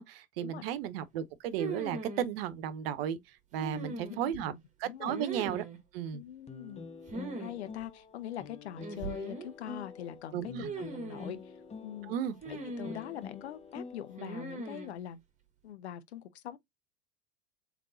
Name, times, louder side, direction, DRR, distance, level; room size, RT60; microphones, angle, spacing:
voice 1, 0.0-3.2 3.5-4.5 4.8-5.6 5.9-6.2 10.3-10.7 12.1-12.3, right 9 dB, 60° right, 0.8 m, -34 dB
sound 1, 1.6-2.3 3.6-4.4 5.1-5.8 7.1-7.5 7.8-7.9 8.8-9.5 10.6-11.4 12.4-13.2 14.2-14.9, right 3 dB, 20° right, 1.3 m, -40 dB
voice 2, 3.6-4.6 4.8-5.2 6.1-6.9 7.4-11.5 11.8-12.1 12.5-15.2 15.6-16.6, left 11 dB, 75° left, 0.7 m, -43 dB
sound 2, 6.5-14.6, left 4 dB, 20° left, 0.7 m, -47 dB
3.7 x 3.2 x 3.8 m
hypercardioid pair, 90°, 33 cm